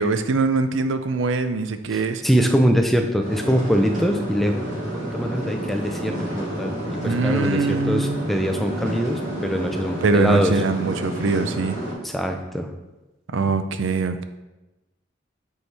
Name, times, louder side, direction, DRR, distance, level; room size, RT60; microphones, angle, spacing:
voice 1, 0.0-2.2 7.0-8.2 10.0-11.8 13.3-14.2, right 3 dB, 80° right, 9 dB, 0.5 m, -22 dB
voice 2, 1.9-4.7 4.9-6.7 7.0-10.5 12.0-12.7, equal, ahead, 4 dB, 0.5 m, -23 dB
sound 1, 3.2-11.9, right 1 dB, 40° right, 2.0 m, -30 dB
8.0 x 4.6 x 3.3 m, 1.0 s
head